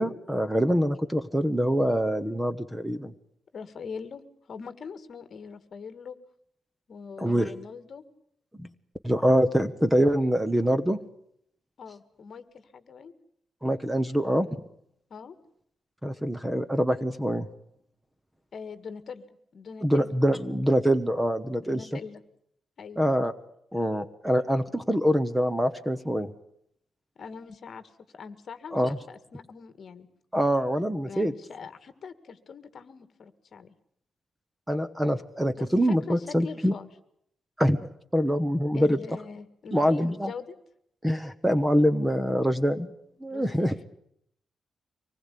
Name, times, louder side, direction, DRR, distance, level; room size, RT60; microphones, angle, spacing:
voice 1, 0.0-3.1 7.2-7.5 8.6-8.7 9.0-11.0 13.6-14.5 16.0-17.5 19.8-21.8 23.0-23.3 23.7-26.3 28.7-29.0 30.3-31.3 34.7-36.7 37.6-37.8 38.1-39.0 39.7-40.3 41.0-42.9 43.2-43.8, equal, 5° right, 11 dB, 0.9 m, -24 dB
voice 2, 3.5-4.2 4.5-6.2 6.9-8.0 11.8-13.1 15.1-15.4 18.5-20.2 21.6-22.2 22.8-23.1 27.2-30.1 31.1-33.7 35.6-36.9 38.7-40.5 43.3-43.7, left 6 dB, 45° left, 11 dB, 1.8 m, -42 dB
25.0 x 20.0 x 8.4 m, 0.71 s
wide cardioid pair, 175°, 0 cm